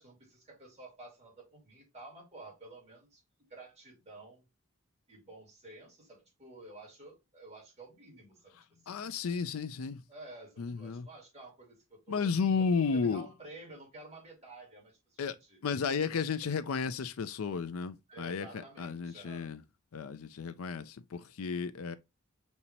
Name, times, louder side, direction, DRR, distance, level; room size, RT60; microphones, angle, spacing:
voice 1, 0.0-3.2 3.5-4.4 5.1-8.6 8.9-9.1 10.1-12.3 12.6-15.6 18.1-19.5, right 2 dB, 30° right, 2.4 m, -51 dB
voice 2, 8.9-10.0 10.6-11.1 12.1-13.3 15.2-15.4 15.6-19.6 19.9-22.0, left 5 dB, 80° left, 0.5 m, -33 dB
5.5 x 2.8 x 2.9 m
head